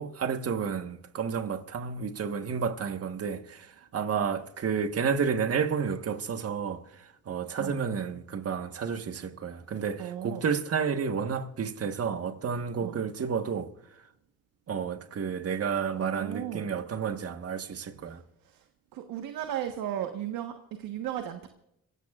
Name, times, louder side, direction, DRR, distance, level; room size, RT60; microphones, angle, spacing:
voice 1, 0.0-3.7 3.9-6.8 7.3-13.7 14.7-18.2, right 6 dB, 45° right, 1.4 m, -31 dB
voice 2, 10.0-10.4 12.8-13.0 15.9-16.7 18.1-18.2 18.4-18.6 18.9-21.5, right 11 dB, 80° right, 1.4 m, -35 dB
26.5 x 16.5 x 2.5 m
cardioid pair, 100°, 34 cm